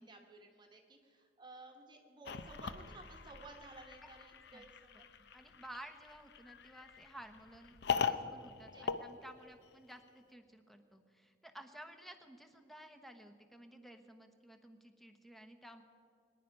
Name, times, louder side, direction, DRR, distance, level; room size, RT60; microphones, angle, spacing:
voice 1, 0.0-5.1 8.7-8.8, right 3 dB, 25° right, 2 dB, 1.3 m, -55 dB
sound 1, 2.2-9.9, left 6 dB, 65° left, 0.7 m, -41 dB
voice 2, 5.2-15.8, right 1 dB, ahead, 6 dB, 1.0 m, -54 dB
23.0 x 10.0 x 5.4 m, 2.4 s
head